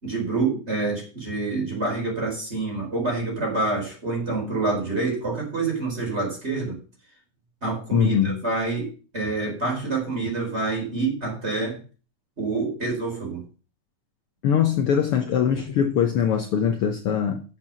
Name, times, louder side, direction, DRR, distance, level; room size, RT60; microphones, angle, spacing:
voice 1, 0.0-6.8 7.6-11.8 12.4-13.4, right 3 dB, 20° right, 4.5 m, -27 dB
voice 2, 7.9-8.4 14.4-17.4, left 8 dB, 75° left, 1.3 m, -22 dB
7.4 x 7.4 x 7.5 m
omnidirectional pair, 3.7 m